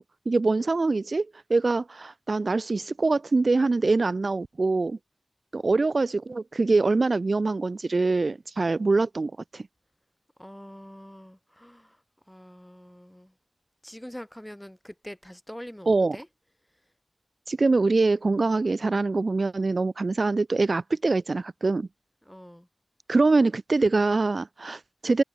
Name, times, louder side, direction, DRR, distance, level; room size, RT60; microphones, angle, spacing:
voice 1, 0.0-5.0 5.5-9.7 15.9-16.2 17.5-21.9 23.1-25.2, right 3 dB, 55° right, 0.5 m, -24 dB
voice 2, 10.4-12.0 12.3-13.3 13.8-16.3 22.3-22.7, equal, 5° left, 2.9 m, -44 dB
cardioid pair, 45°, 0 cm